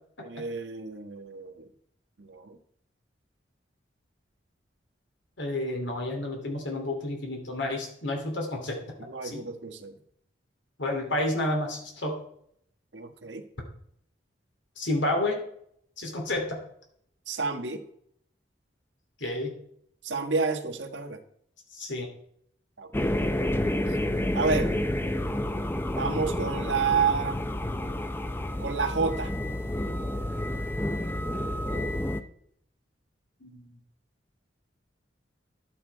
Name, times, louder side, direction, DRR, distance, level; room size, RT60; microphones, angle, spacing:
voice 1, 0.2-1.7 2.2-2.6 9.0-9.9 12.9-13.4 17.3-17.8 20.0-21.2 22.8-22.9 23.9-24.0 24.3-24.7 26.0-27.4 28.6-29.3, right 5 dB, 80° right, 5 dB, 1.4 m, -29 dB
voice 2, 5.4-8.8 9.2-9.4 10.8-12.2 14.8-15.4 16.0-16.6 19.2-19.5 21.7-22.1 33.4-33.7, left 1 dB, 85° left, 1 dB, 2.6 m, -30 dB
sound 1, 22.9-32.2, left 1 dB, 10° left, 0.6 m, -29 dB
12.0 x 8.9 x 4.6 m, 0.68 s
head